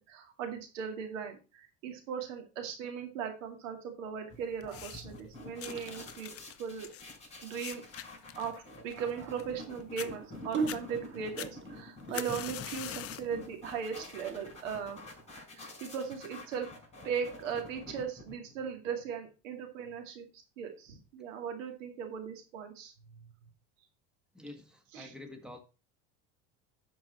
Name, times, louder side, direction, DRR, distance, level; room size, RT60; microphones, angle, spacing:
voice 1, 0.0-6.3 6.6-6.9 7.4-7.8 8.4-15.0 15.5-16.7 17.0-20.3 20.6-22.9 24.9-25.1, right 7 dB, 90° right, 5 dB, 2.2 m, -38 dB
sound 1, 4.3-18.7, left 2 dB, 15° left, 5.2 m, -48 dB
sound 2, 4.6-5.2 5.6-9.6 10.0-10.1 10.5-10.8 11.4-13.3 13.8-14.1 14.9-15.0, left 12 dB, 40° left, 0.7 m, -44 dB
sound 3, 5.2-6.0 6.9-8.0 10.2-12.7 13.8-14.4, right 5 dB, 30° right, 1.1 m, -39 dB
voice 2, 24.3-25.6, left 2 dB, ahead, 5 dB, 1.7 m, -47 dB
12.5 x 4.7 x 4.3 m, 0.31 s
supercardioid pair, 95°, 37 cm